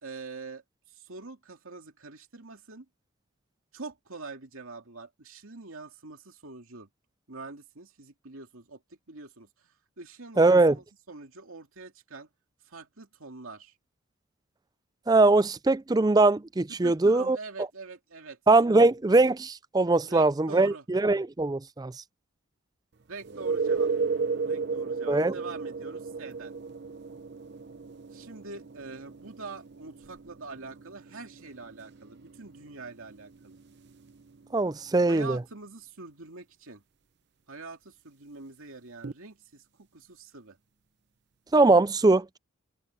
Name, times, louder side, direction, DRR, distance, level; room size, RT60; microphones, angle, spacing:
voice 1, 0.0-2.9 3.7-6.9 7.3-8.8 9.1-12.3 12.6-13.7 16.7-18.4 20.0-20.8 23.1-23.9 24.4-26.5 28.1-33.6 35.1-36.8 37.5-40.6, right 3 dB, 75° right, 2.5 m, -44 dB
voice 2, 10.4-10.8 15.1-17.4 18.5-21.9 25.1-25.3 34.5-35.4 41.5-42.4, right 2 dB, 20° right, 0.4 m, -21 dB
sound 1, 23.2-34.8 39.0-39.1, right 4 dB, 50° right, 0.7 m, -34 dB
head